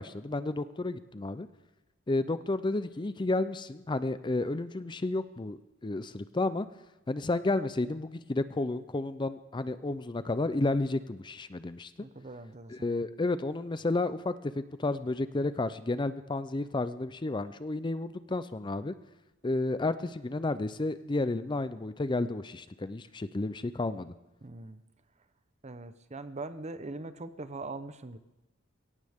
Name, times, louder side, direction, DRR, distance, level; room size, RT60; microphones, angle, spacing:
voice 1, 0.0-1.5 2.1-6.7 7.1-11.9 12.7-18.9 19.4-24.1, left 2 dB, 25° left, 13 dB, 0.5 m, -31 dB
voice 2, 12.0-13.0 24.4-24.8 25.6-28.2, right 2 dB, 35° right, 12 dB, 0.8 m, -42 dB
22.0 x 17.5 x 3.6 m, 1.0 s
head